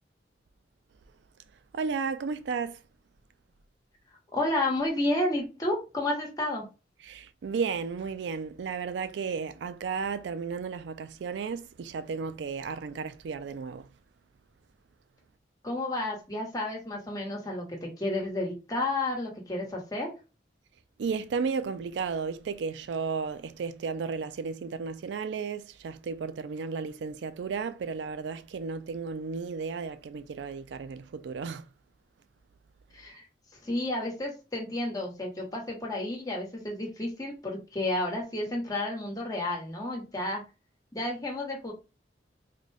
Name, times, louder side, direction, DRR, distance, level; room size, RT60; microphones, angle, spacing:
voice 1, 1.7-2.8 7.0-13.9 21.0-31.6, right 5 dB, 80° right, 0.4 m, -33 dB
voice 2, 4.3-6.7 15.6-20.1 32.9-33.2 33.6-40.4 40.9-41.7, left 1 dB, 20° left, 1.1 m, -31 dB
3.8 x 2.2 x 3.3 m
head